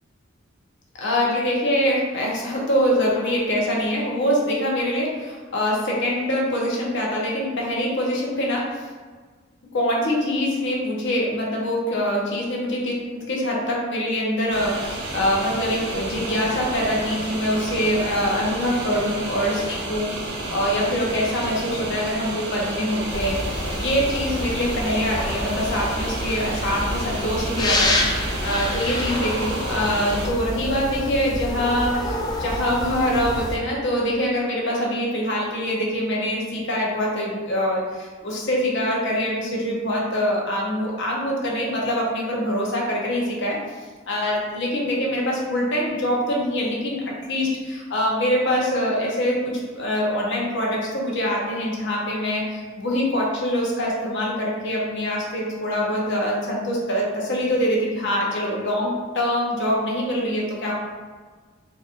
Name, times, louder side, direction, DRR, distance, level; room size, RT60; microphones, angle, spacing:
voice 1, 1.0-8.7 9.7-28.0 28.4-43.6 44.1-60.7, equal, 60° left, -3 dB, 0.8 m, -24 dB
sound 1, 14.5-30.3, right 2 dB, 60° right, 0.5 m, -31 dB
sound 2, 23.1-33.6, left 1 dB, 20° left, 0.4 m, -28 dB
4.0 x 2.7 x 2.5 m, 1.4 s
head